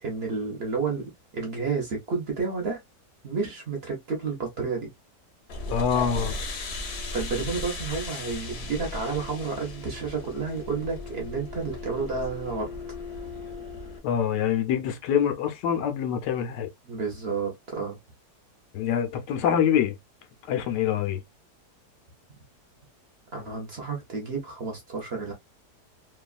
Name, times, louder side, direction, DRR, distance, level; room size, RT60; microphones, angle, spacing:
voice 1, 0.0-2.8 3.2-4.9 7.1-12.7 16.8-18.0 23.3-25.3, right 4 dB, 50° right, 0.9 m, -31 dB
sound 1, 5.5-14.0, left 2 dB, 55° left, 0.8 m, -36 dB
voice 2, 5.7-6.4 14.0-16.7 18.7-20.0 20.5-21.2, left 8 dB, 85° left, 1.3 m, -25 dB
3.1 x 2.3 x 2.4 m
omnidirectional pair, 1.8 m